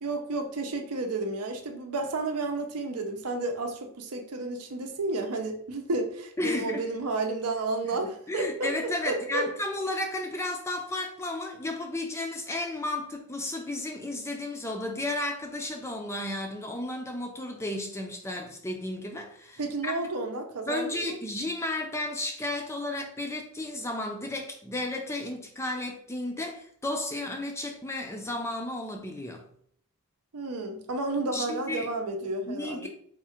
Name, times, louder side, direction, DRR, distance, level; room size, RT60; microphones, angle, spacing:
voice 1, 0.0-8.7 9.1-9.4 19.6-21.2 30.3-32.9, right 2 dB, 90° right, 4 dB, 0.7 m, -31 dB
voice 2, 6.4-6.9 7.9-8.0 8.3-19.9 20.7-29.4 31.3-31.9 32.5-32.9, left 1 dB, 10° left, 3 dB, 0.4 m, -33 dB
3.6 x 2.4 x 4.3 m, 0.63 s
head